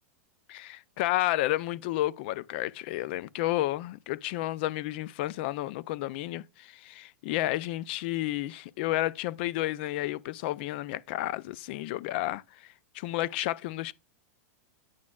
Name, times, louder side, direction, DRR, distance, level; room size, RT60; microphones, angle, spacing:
voice 1, 0.5-12.4 12.9-13.9, left 16 dB, 40° left, 0.3 m, -31 dB
8.6 x 6.2 x 2.3 m
supercardioid pair, 165°, 8 cm